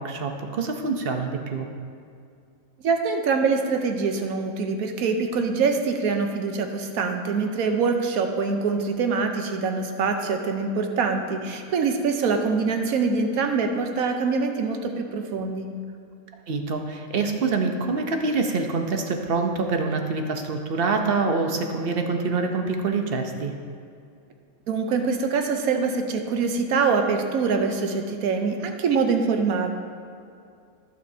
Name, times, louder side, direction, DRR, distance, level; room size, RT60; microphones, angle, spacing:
voice 1, 0.0-1.7 16.5-23.5, right 4 dB, 50° right, 4 dB, 0.8 m, -26 dB
voice 2, 2.8-15.7 24.7-29.7, right 4 dB, 75° right, 5 dB, 1.2 m, -24 dB
15.0 x 7.6 x 2.7 m, 2.4 s
omnidirectional pair, 1.6 m